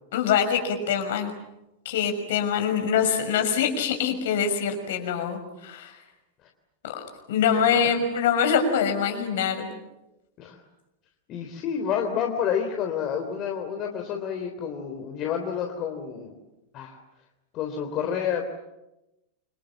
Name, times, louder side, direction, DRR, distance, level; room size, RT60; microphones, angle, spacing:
voice 1, 0.1-1.3 1.8-6.0 6.8-6.9 7.3-9.7, left 7 dB, 55° left, 6 dB, 6.1 m, -24 dB
voice 2, 11.3-16.3 16.7-17.0 17.5-18.4, left 8 dB, 35° left, 4 dB, 3.5 m, -29 dB
30.0 x 26.0 x 7.4 m, 0.95 s
figure-of-eight pair, 90°, 0 cm